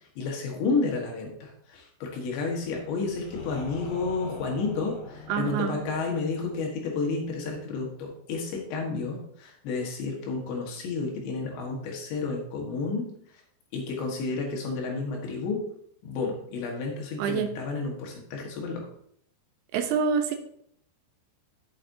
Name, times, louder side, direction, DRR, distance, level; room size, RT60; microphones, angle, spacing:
voice 1, 0.2-13.1 13.7-15.7 16.0-18.9, left 4 dB, 85° left, 0 dB, 3.9 m, -31 dB
sound 1, 2.5-8.3, left 4 dB, 60° left, 1.6 m, -44 dB
voice 2, 5.3-5.8 17.2-17.5 19.7-20.3, right 6 dB, 80° right, 5 dB, 2.9 m, -26 dB
12.0 x 7.7 x 2.8 m, 0.68 s
omnidirectional pair, 5.0 m